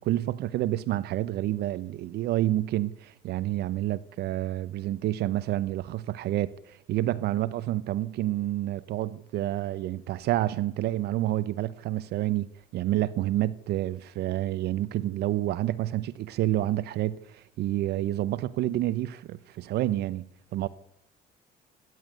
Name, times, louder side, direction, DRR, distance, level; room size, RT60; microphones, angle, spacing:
voice 1, 0.0-20.7, right 14 dB, 75° right, 0.9 m, -29 dB
27.0 x 11.0 x 9.4 m
cardioid pair, 110°, 17 cm